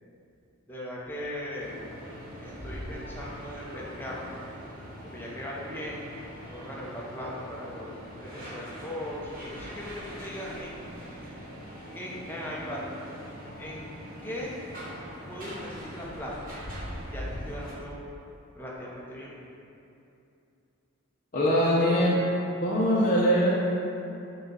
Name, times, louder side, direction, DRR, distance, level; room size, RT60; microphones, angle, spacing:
voice 1, 0.7-1.9 2.4-4.3 5.0-6.1 6.5-10.7 11.9-13.0 13.6-13.9 14.2-14.6 15.3-16.5 17.1-18.0 18.6-19.5, left 1 dB, 10° left, -5 dB, 0.8 m, -38 dB
sound 1, 1.6-17.7, equal, 40° right, 1.2 m, -42 dB
voice 2, 21.3-22.2 22.6-23.6, equal, 40° left, -7 dB, 0.7 m, -22 dB
7.1 x 2.4 x 5.5 m, 2.7 s
head